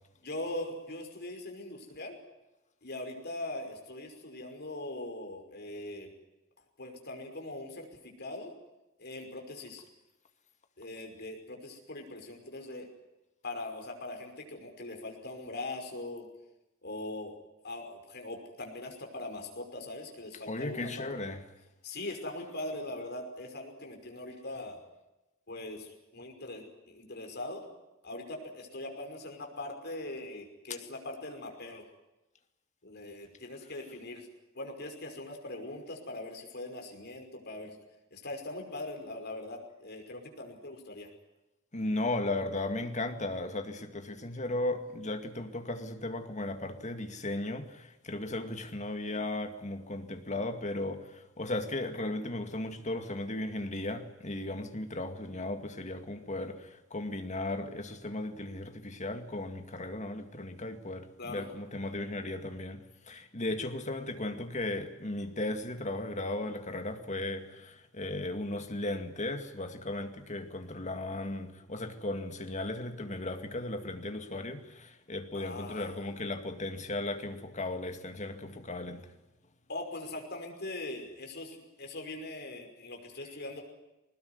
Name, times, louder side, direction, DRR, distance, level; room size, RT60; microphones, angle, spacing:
voice 1, 0.2-2.2 2.8-6.1 6.8-8.5 9.0-9.8 10.8-12.9 13.4-16.3 16.8-17.4 17.6-21.1 21.8-24.8 25.5-27.6 28.0-31.8 32.8-34.3 34.5-37.8 38.1-41.1 61.2-61.5 75.3-76.0 79.7-83.6, left 2 dB, 50° left, 5.6 m, -41 dB
voice 2, 20.5-21.4 41.7-79.1, left 2 dB, 35° left, 2.2 m, -36 dB
21.0 x 20.0 x 9.7 m
head